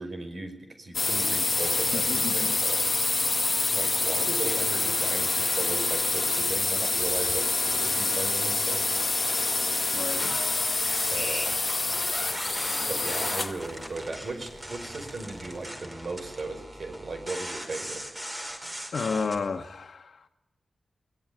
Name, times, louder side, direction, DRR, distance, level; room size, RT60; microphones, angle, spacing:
voice 1, 0.0-2.8 3.7-8.9 11.1-11.5 12.9-18.0, right 3 dB, 50° right, 5.2 m, -37 dB
sound 1, 0.9-13.6, left 3 dB, 30° left, 1.0 m, -26 dB
voice 2, 1.9-2.5 9.9-10.4 18.9-20.2, left 4 dB, 65° left, 1.6 m, -32 dB
sound 2, 10.1-19.4, equal, 20° right, 4.7 m, -39 dB
22.0 x 20.5 x 9.6 m
wide cardioid pair, 150°, 0 cm